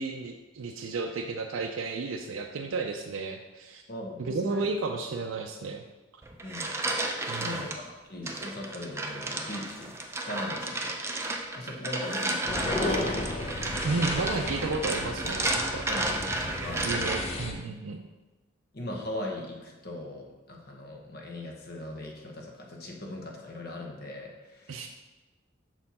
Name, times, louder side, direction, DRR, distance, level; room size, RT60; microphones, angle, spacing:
voice 1, 0.0-3.8 4.2-5.8 7.3-7.6 13.8-15.8 16.8-18.0 24.7-24.9, right 3 dB, 80° right, 3 dB, 0.4 m, -33 dB
voice 2, 3.9-4.7 6.4-7.0 7.4-10.0 10.3-11.0 11.5-13.2 15.9-16.9 18.7-24.9, left 1 dB, 50° left, 1 dB, 1.0 m, -39 dB
sound 1, 6.2-7.8 8.3-17.4, right 2 dB, 15° right, 0.4 m, -32 dB
sound 2, 12.5-17.5, left 2 dB, 30° left, 0.6 m, -34 dB
6.2 x 4.3 x 4.2 m, 1.2 s
head